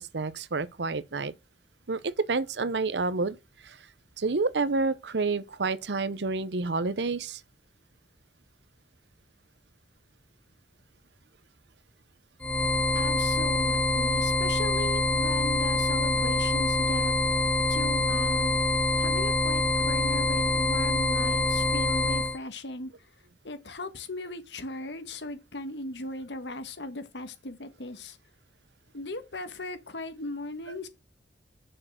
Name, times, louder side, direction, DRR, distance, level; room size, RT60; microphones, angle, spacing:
voice 1, 0.0-1.3 1.9-3.4 3.6-3.8 4.2-7.4, right 3 dB, 70° right, 0.7 m, -29 dB
sound 1, 12.4-22.4, left 2 dB, 5° left, 0.8 m, -25 dB
voice 2, 12.9-17.4 17.7-18.6 19.0-22.9 23.4-28.2 28.9-30.9, left 2 dB, 80° left, 1.5 m, -38 dB
6.7 x 6.6 x 7.4 m
head